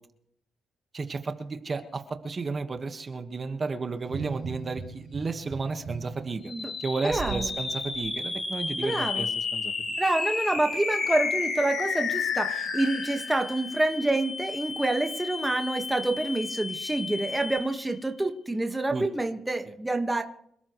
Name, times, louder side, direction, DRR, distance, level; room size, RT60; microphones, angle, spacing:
voice 1, 0.9-6.5 6.8-9.7 18.9-19.0, right 4 dB, 40° right, 7 dB, 1.5 m, -33 dB
sound 1, 4.0-7.5 7.9-8.1, right 5 dB, 70° right, 2.3 m, -39 dB
sound 2, 6.4-18.0, left 5 dB, 60° left, 7.0 m, -32 dB
voice 2, 7.0-7.5 8.8-9.3 10.0-20.2, right 2 dB, 10° right, 4 dB, 1.5 m, -27 dB
26.5 x 13.0 x 3.2 m, 0.72 s
cardioid pair, 80°, 0 cm